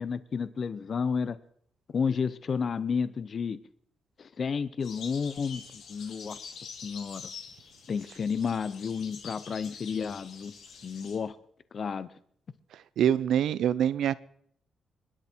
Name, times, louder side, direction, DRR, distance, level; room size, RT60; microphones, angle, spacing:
voice 1, 0.0-1.4 1.9-3.6 4.2-6.4 6.8-7.3 7.9-10.5 10.8-11.4 11.7-12.1, left 6 dB, 40° left, 15 dB, 0.7 m, -31 dB
sound 1, 4.8-11.2, left 6 dB, 70° left, 3.4 m, -46 dB
voice 2, 13.0-14.1, right 9 dB, 75° right, 18 dB, 0.7 m, -24 dB
27.0 x 12.0 x 4.5 m, 0.65 s
wide cardioid pair, 175°, 0 cm